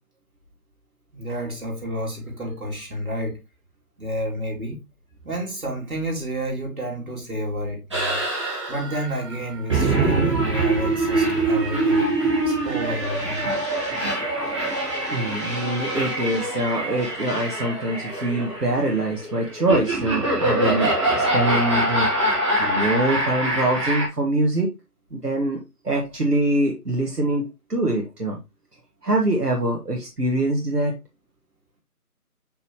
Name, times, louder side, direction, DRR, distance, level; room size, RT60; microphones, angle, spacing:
voice 1, 1.1-3.4 4.0-4.8 5.2-8.4 8.7-12.1 12.5-13.5, equal, 65° right, 2.9 m, -30 dB
sound 1, 7.9-24.1, right 2 dB, 20° right, 1.6 m, -24 dB
voice 2, 14.7-22.1 22.6-24.7 25.1-25.6 25.8-28.4 29.0-30.9, right 1 dB, 85° right, 1.6 m, -24 dB
6.0 x 5.5 x 3.0 m
figure-of-eight pair, 165°, 46 cm